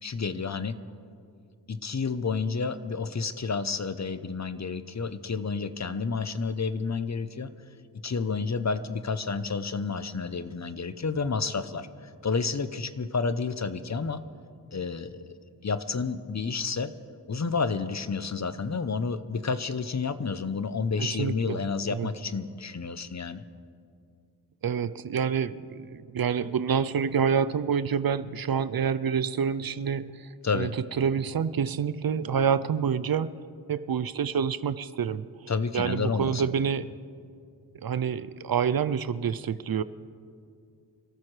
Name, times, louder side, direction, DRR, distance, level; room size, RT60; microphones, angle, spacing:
voice 1, 0.0-0.8 1.7-7.5 8.0-14.2 14.7-15.3 15.6-16.9 17.3-23.4 30.4-30.7 35.5-36.5, left 4 dB, 40° left, 12 dB, 0.7 m, -30 dB
voice 2, 21.2-21.6 21.9-22.1 24.6-30.7 31.0-33.4 33.7-36.9 37.8-39.8, right 7 dB, 55° right, 15 dB, 0.5 m, -27 dB
27.5 x 13.5 x 3.3 m, 2.3 s
cardioid pair, 55°, 43 cm